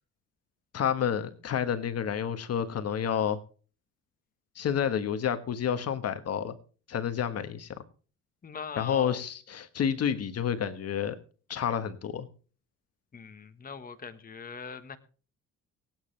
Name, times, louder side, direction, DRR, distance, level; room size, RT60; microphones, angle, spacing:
voice 1, 0.7-3.4 4.5-6.6 6.9-7.8 8.8-11.2 11.5-12.3, left 8 dB, 50° left, 10 dB, 1.4 m, -29 dB
voice 2, 8.4-9.2 13.1-15.0, left 6 dB, 25° left, 9 dB, 1.4 m, -41 dB
23.5 x 9.0 x 3.3 m, 0.39 s
cardioid pair, 100°, 31 cm